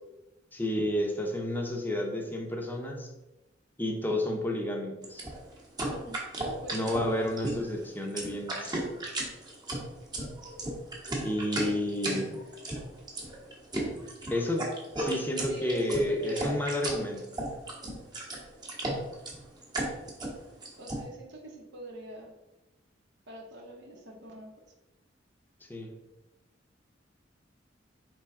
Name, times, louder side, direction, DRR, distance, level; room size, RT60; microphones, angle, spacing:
voice 1, 0.5-3.1 3.8-5.2 6.7-8.8 11.2-12.4 14.3-14.7 15.0-17.2 25.7-26.0, left 1 dB, 10° left, 1 dB, 0.7 m, -31 dB
sound 1, 5.0-21.0, right 1 dB, 25° right, 1.0 m, -35 dB
voice 2, 5.8-6.9 15.5-16.6 20.8-22.3 23.3-24.5, right 2 dB, 65° right, 0 dB, 0.8 m, -44 dB
4.5 x 3.2 x 3.6 m, 0.98 s
head